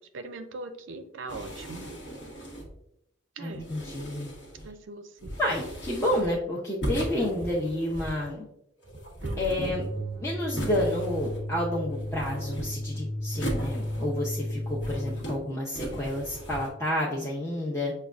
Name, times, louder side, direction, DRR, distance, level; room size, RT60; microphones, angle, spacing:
voice 1, 0.1-1.9 3.4-3.7 4.6-5.3 9.2-9.6, right 2 dB, 80° right, 9 dB, 0.4 m, -40 dB
sound 1, 1.3-2.8 3.5-4.7 5.2-6.4 6.8-8.3 8.8-10.0 10.5-11.6 11.9-12.9 13.3-14.3 14.6-15.4 15.7-16.7, right 1 dB, 65° left, 1.0 m, -37 dB
voice 2, 3.4-4.3 5.4-8.5 9.4-9.8 10.2-18.0, left 1 dB, 15° left, -6 dB, 0.5 m, -30 dB
sound 2, 9.6-15.2, equal, 25° right, 0.7 m, -34 dB
6.3 x 2.2 x 2.3 m, 0.79 s
head